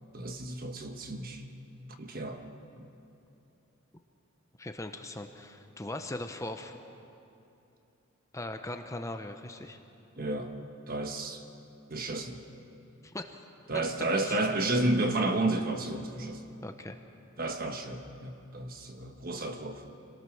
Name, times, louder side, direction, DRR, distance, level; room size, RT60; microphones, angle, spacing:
voice 1, 0.1-1.4 2.0-2.4 2.8-2.9 10.2-10.5 10.9-11.4 11.9-12.4 13.7-16.4 17.4-19.8, right 2 dB, 45° right, 5 dB, 1.4 m, -31 dB
voice 2, 4.6-6.8 8.3-9.8 13.0-13.4 14.2-14.4 16.6-17.0, left 1 dB, 15° left, 6 dB, 0.7 m, -39 dB
25.5 x 18.0 x 6.4 m, 2.8 s
head